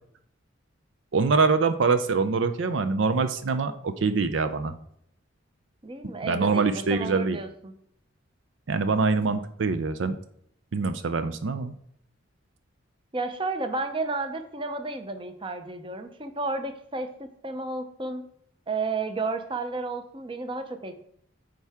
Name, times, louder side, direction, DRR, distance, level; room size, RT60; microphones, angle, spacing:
voice 1, 1.1-4.7 6.2-7.4 8.7-10.2 10.7-11.7, right 4 dB, 70° right, 10 dB, 0.5 m, -24 dB
voice 2, 5.8-7.7 13.1-18.2 18.7-21.1, right 3 dB, 25° right, 8 dB, 0.7 m, -32 dB
8.6 x 4.7 x 3.5 m, 0.70 s
head